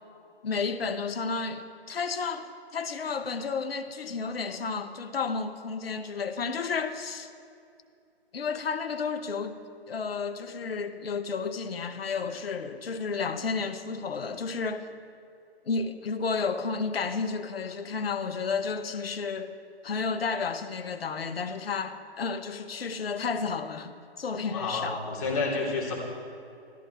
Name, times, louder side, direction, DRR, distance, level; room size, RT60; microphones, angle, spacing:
voice 1, 0.4-7.3 8.3-9.6 9.9-14.9 15.7-19.5 19.8-25.0, left 5 dB, 65° left, 1.1 m, -32 dB
voice 2, 24.4-25.9, left 3 dB, 35° left, 3.4 m, -30 dB
14.5 x 13.5 x 4.7 m
hypercardioid pair, 150°, 32 cm